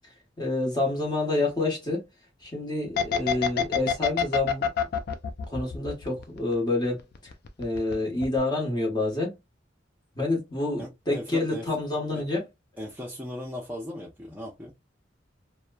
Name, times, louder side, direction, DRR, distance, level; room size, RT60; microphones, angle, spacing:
voice 1, 0.4-2.0 2.4-4.6 5.5-7.0 7.6-9.4 10.2-12.4, left 2 dB, 25° left, 1.1 m, -28 dB
sound 1, 3.0-6.7 7.0-7.9 8.2-8.4, left 8 dB, 55° left, 0.4 m, -26 dB
voice 2, 10.8-11.7 12.8-14.7, equal, 10° right, 0.6 m, -37 dB
2.9 x 2.2 x 2.2 m
head